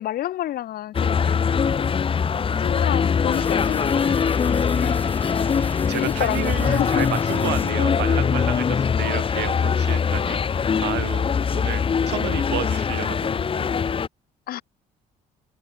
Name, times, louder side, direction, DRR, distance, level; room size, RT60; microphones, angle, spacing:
voice 1, 0.0-1.9 2.6-3.9 4.8-5.0 6.0-7.1 14.5-14.6, left 13 dB, 65° left, 1.2 m, -30 dB
sound 1, 0.9-14.1, left 6 dB, 30° left, 1.3 m, -22 dB
voice 2, 2.1-2.6 5.6-13.7, right 17 dB, 80° right, 1.7 m, -32 dB
sound 2, 3.3-7.7, left 2 dB, 10° left, 4.1 m, -40 dB
cardioid pair, 110°, 17 cm